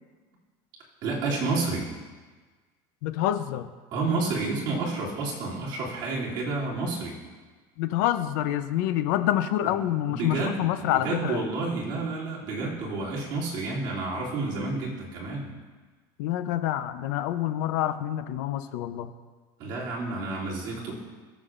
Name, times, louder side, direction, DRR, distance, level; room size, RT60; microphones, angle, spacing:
voice 1, 1.0-1.9 3.9-7.2 9.6-9.7 10.1-15.5 19.6-21.0, right 3 dB, 40° right, -5 dB, 2.8 m, -30 dB
voice 2, 3.0-3.7 7.8-11.4 16.2-19.1, left 12 dB, 70° left, 10 dB, 0.6 m, -27 dB
21.0 x 7.2 x 2.5 m, 1.4 s
cardioid pair, 165°, 10 cm